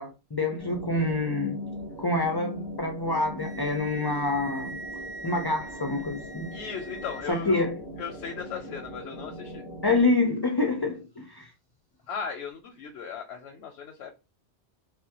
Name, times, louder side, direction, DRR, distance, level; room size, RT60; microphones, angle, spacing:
voice 1, 0.0-1.6 2.0-4.8 5.2-6.5 7.3-7.7 9.8-11.5, left 2 dB, 40° left, 0.3 m, -27 dB
sound 1, 0.6-10.0, equal, 75° right, 1.2 m, -40 dB
Wind instrument woodwind instrument, 3.4-7.3, right 2 dB, 60° right, 1.4 m, -42 dB
voice 2, 6.5-7.6 8.0-9.6 12.1-14.1, left 6 dB, 90° left, 0.8 m, -37 dB
3.4 x 2.1 x 2.8 m
omnidirectional pair, 1.1 m